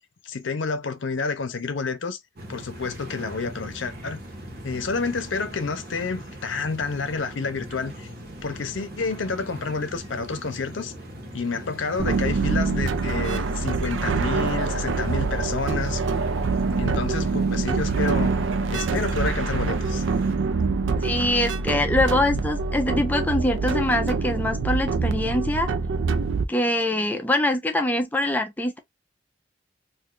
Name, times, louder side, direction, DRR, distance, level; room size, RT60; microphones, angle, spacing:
voice 1, 0.2-2.2 2.5-4.2 4.6-8.1 8.4-10.9 11.3-16.0 16.7-18.3 18.7-20.0, left 4 dB, 80° left, 0.6 m, -29 dB
sound 1, 2.4-20.4, equal, 50° right, 1.1 m, -40 dB
sound 2, 12.0-26.5, right 4 dB, 85° right, 0.4 m, -25 dB
voice 2, 21.0-25.7 26.5-28.8, left 1 dB, 10° left, 0.4 m, -24 dB
2.6 x 2.4 x 3.6 m
head